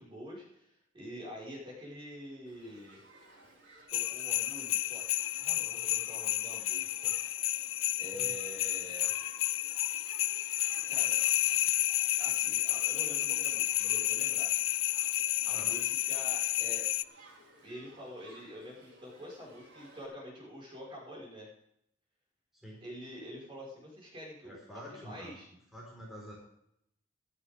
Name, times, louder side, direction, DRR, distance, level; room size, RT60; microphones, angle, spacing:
voice 1, 0.0-3.0 3.9-5.1 5.3-7.2 8.0-9.1 10.8-11.2 12.2-14.5 15.4-16.9 17.6-21.5 22.8-25.5, equal, 25° right, -3 dB, 5.3 m, -47 dB
Shout / Human group actions, 2.5-20.1, right 1 dB, 55° right, 4.6 m, -57 dB
sound 1, 3.9-17.0, left 15 dB, 70° left, 0.4 m, -31 dB
voice 2, 24.4-25.3 25.7-26.3, equal, ahead, -5 dB, 4.5 m, -47 dB
15.5 x 14.0 x 3.6 m, 0.75 s
head